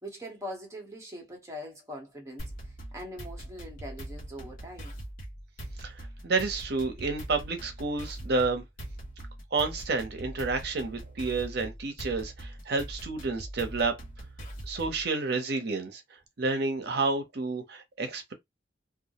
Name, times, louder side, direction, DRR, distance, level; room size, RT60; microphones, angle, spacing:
voice 1, 0.0-4.9, equal, 15° right, 0.8 m, -42 dB
sound 1, 2.4-15.1, right 1 dB, 50° left, 1.0 m, -42 dB
voice 2, 6.2-8.6 9.5-13.9 14.7-16.0 16.4-18.3, right 3 dB, 55° right, 0.6 m, -30 dB
2.3 x 2.0 x 2.8 m
head